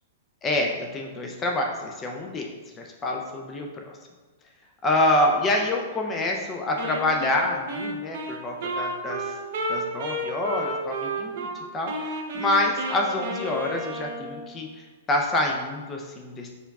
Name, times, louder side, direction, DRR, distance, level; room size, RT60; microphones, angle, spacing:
voice 1, 0.4-2.5 2.8-3.9 4.8-9.3 9.7-11.5 11.7-16.6, left 1 dB, 20° left, 1 dB, 0.4 m, -27 dB
Wind instrument woodwind instrument, 6.8-11.6 11.9-14.5, right 1 dB, 60° right, 0.9 m, -32 dB
5.1 x 4.4 x 2.3 m, 1.3 s
hypercardioid pair, 150°, 0 cm